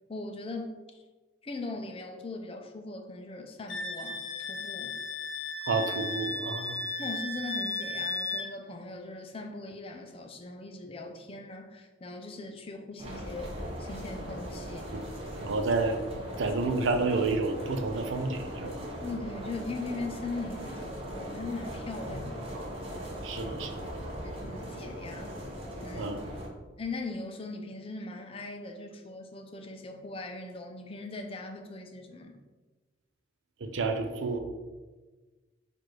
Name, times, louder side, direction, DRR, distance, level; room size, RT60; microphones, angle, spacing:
voice 1, 0.1-0.8 1.4-5.0 7.0-14.9 15.4-15.6 19.0-22.5 24.2-25.4 25.8-26.2 26.8-32.4, left 2 dB, 30° left, 4 dB, 0.4 m, -40 dB
Wind instrument woodwind instrument, 3.7-8.5, left 2 dB, 65° left, 0.8 m, -35 dB
voice 2, 5.7-6.8 15.4-16.0 16.4-18.8 22.5-22.7 23.2-23.8 26.0-26.2 33.6-34.4, right 3 dB, 70° right, 5 dB, 0.4 m, -30 dB
sound 1, 13.0-26.5, equal, 30° right, 0.8 m, -39 dB
4.6 x 2.6 x 4.5 m, 1.3 s
head